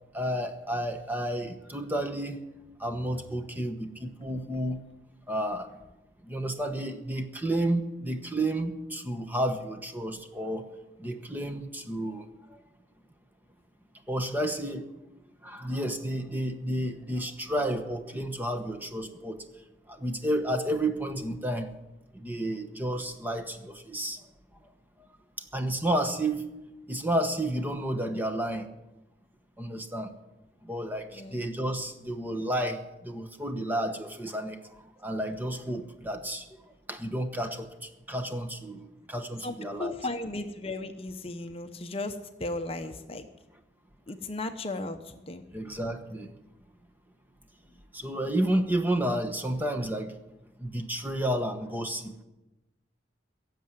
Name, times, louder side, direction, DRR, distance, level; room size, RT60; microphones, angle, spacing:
voice 1, 0.1-2.4 2.8-4.8 5.3-5.7 6.3-10.7 11.0-12.3 14.1-14.9 15.4-19.4 19.9-21.7 22.1-24.2 25.5-26.4 26.9-28.7 29.6-30.1 30.6-34.6 35.0-36.5 36.9-37.7 38.1-39.9 45.5-46.3 47.9-50.1 50.6-52.1, right 1 dB, 10° right, 7 dB, 1.0 m, -31 dB
voice 2, 31.1-31.4 39.4-43.3 44.1-45.4, left 2 dB, 30° left, 7 dB, 0.8 m, -36 dB
16.5 x 7.5 x 9.6 m, 0.99 s
head